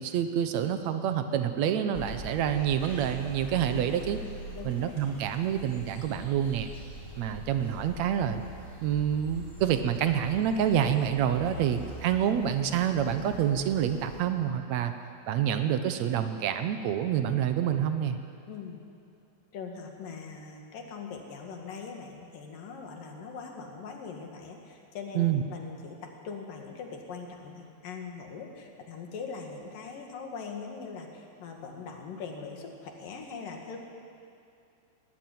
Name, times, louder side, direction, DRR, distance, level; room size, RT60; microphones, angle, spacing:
voice 1, 0.0-4.2 4.6-6.7 7.2-8.4 8.8-14.9 15.3-18.2 25.2-25.4, right 9 dB, 70° right, 8 dB, 1.7 m, -27 dB
sound 1, 1.9-14.2, left 1 dB, 20° left, 5.1 m, -44 dB
voice 2, 18.5-18.8 19.5-33.8, left 5 dB, 65° left, 2 dB, 3.5 m, -41 dB
19.5 x 15.0 x 9.4 m, 2.4 s
omnidirectional pair, 4.3 m